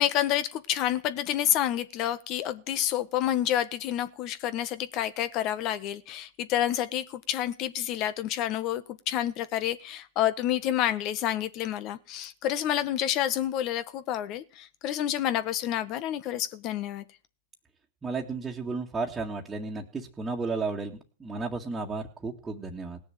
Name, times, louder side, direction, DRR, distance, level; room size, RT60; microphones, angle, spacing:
voice 1, 0.0-17.0, left 12 dB, 40° left, 1.4 m, -29 dB
voice 2, 18.0-23.0, right 3 dB, 15° right, 2.0 m, -33 dB
18.0 x 7.0 x 9.2 m
hypercardioid pair, 120°, 0 cm